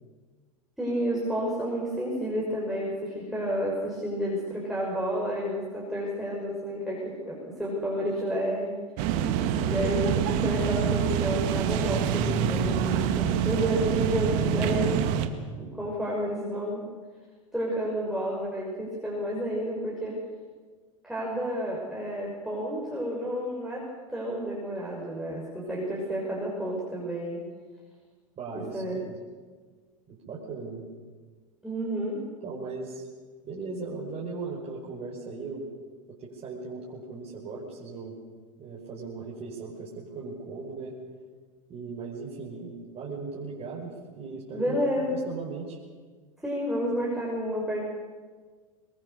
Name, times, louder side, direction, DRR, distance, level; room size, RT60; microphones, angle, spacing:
voice 1, 0.8-8.7 9.6-15.0 15.6-16.8 17.5-20.2 21.0-27.4 28.5-29.0 31.6-32.2 44.5-45.2 46.4-47.8, equal, ahead, -5 dB, 6.2 m, -30 dB
sound 1, 9.0-15.3, right 8 dB, 55° right, 2.0 m, -26 dB
voice 2, 28.4-29.2 30.1-30.9 32.4-33.1 33.4-35.7 36.1-38.2 38.6-40.9 41.7-45.8, right 4 dB, 35° right, -4 dB, 5.3 m, -38 dB
23.5 x 21.5 x 7.0 m, 1.5 s
hypercardioid pair, 95°, 18 cm